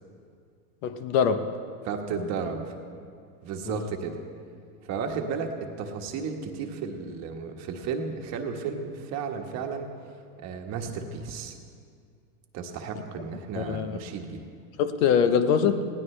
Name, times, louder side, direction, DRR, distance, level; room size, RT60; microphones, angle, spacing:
voice 1, 0.8-1.5 3.7-3.8 13.6-14.0 14.8-15.9, left 7 dB, 55° left, 10 dB, 1.0 m, -23 dB
voice 2, 1.8-2.7 3.4-4.2 4.8-9.9 10.4-11.6 12.5-14.4, right 5 dB, 35° right, 3 dB, 1.3 m, -33 dB
19.5 x 17.5 x 3.3 m, 2.2 s
supercardioid pair, 145°, 48 cm